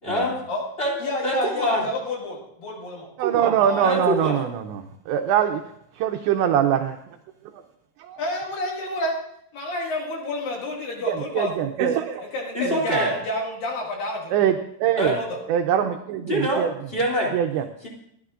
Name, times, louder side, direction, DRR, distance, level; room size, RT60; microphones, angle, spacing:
voice 1, 0.0-0.4 0.8-0.9 1.2-1.8 3.8-4.4 12.5-13.1 15.0-15.2 16.2-17.3 17.8-17.9, equal, 15° left, -3 dB, 2.0 m, -24 dB
voice 2, 1.0-3.1 3.6-4.3 8.2-9.1 9.5-11.7 12.2-14.4 14.9-15.2, left 1 dB, 55° left, -2 dB, 3.4 m, -29 dB
voice 3, 3.2-5.6 6.0-7.0 11.1-12.3 12.7-12.8 14.3-15.2 15.5-16.7 17.3-17.6, right 9 dB, 80° right, 5 dB, 2.7 m, -23 dB
30.0 x 12.5 x 2.5 m, 0.72 s
omnidirectional pair, 5.7 m